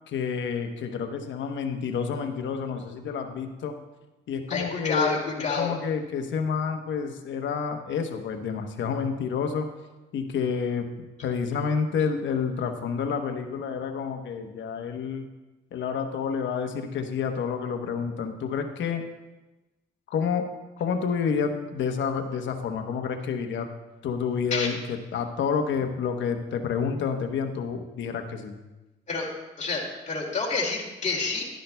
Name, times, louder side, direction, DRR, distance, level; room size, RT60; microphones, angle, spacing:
voice 1, 0.1-3.7 4.3-5.2 5.5-9.7 10.1-10.9 11.2-15.3 15.7-19.0 20.1-20.5 20.8-23.7 24.0-28.5, left 6 dB, 70° left, 6 dB, 1.0 m, -29 dB
voice 2, 4.5-5.7 24.5-24.7 29.1-29.3 29.6-31.5, left 4 dB, 35° left, -2 dB, 2.5 m, -28 dB
11.5 x 10.0 x 2.3 m, 1.1 s
cardioid pair, 90°, 20 cm